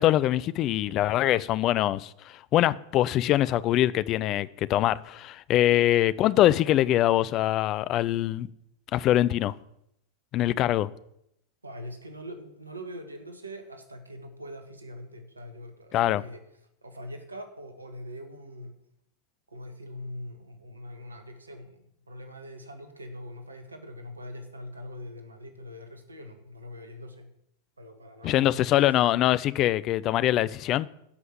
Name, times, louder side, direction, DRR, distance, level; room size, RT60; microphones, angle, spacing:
voice 1, 0.0-8.5 8.9-9.5 10.3-10.9 15.9-16.2 28.2-30.9, left 13 dB, 35° left, 0.4 m, -23 dB
voice 2, 11.6-16.4 16.8-18.7 19.5-27.3 27.8-28.8, equal, 80° right, 1.5 m, -42 dB
10.5 x 5.7 x 7.6 m
figure-of-eight pair, 90°, 0 cm